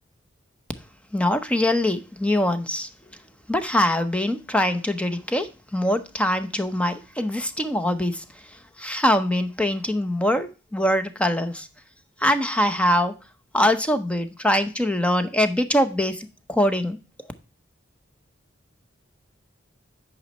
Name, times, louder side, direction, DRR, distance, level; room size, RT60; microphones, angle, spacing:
voice 1, 1.1-3.2 3.5-11.7 12.2-13.2 13.5-17.0, left 1 dB, 5° left, 0.7 m, -23 dB
8.7 x 5.4 x 4.1 m
head